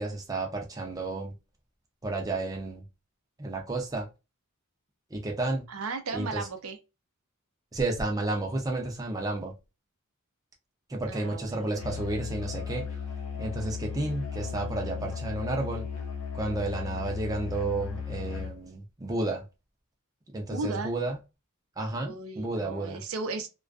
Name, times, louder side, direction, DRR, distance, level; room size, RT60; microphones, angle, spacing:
voice 1, 0.0-1.4 2.0-2.9 3.4-4.1 5.1-5.6 6.1-6.5 7.7-9.5 10.9-12.9 13.4-15.9 16.3-19.4 20.3-21.2 21.8-23.0, right 2 dB, 15° right, 0.5 m, -32 dB
voice 2, 5.7-6.8 11.1-12.0 20.5-20.9 21.9-23.5, right 3 dB, 70° right, 0.5 m, -35 dB
Musical instrument, 11.7-18.6, left 6 dB, 70° left, 0.7 m, -36 dB
2.3 x 2.3 x 2.3 m
head